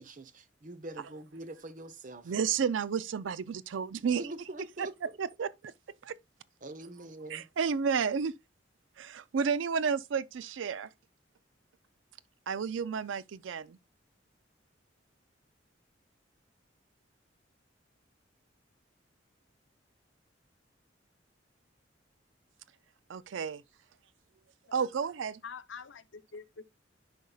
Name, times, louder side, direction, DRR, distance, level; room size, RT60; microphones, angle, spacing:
voice 1, 0.0-2.3 4.2-4.9 6.6-7.5, right 2 dB, 45° right, 0.9 m, -43 dB
voice 2, 2.2-4.2 4.8-4.9 5.2-5.7 6.0-6.2 7.3-8.3 9.0-10.9 12.5-13.8 23.1-23.6 24.7-25.4, right 6 dB, 90° right, 0.4 m, -31 dB
voice 3, 25.4-26.7, left 5 dB, 85° left, 0.7 m, -46 dB
10.0 x 5.3 x 2.3 m
head